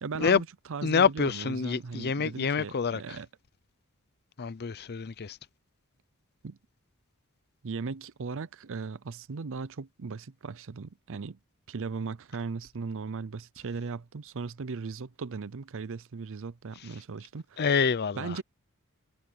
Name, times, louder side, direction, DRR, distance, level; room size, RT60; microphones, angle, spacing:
voice 1, 0.0-3.3 6.4-6.6 7.6-11.4 11.7-17.7 18.2-18.4, right 4 dB, 65° right, 0.6 m, -38 dB
voice 2, 0.8-3.2 4.4-5.4 17.6-18.3, left 6 dB, 50° left, 0.6 m, -27 dB
head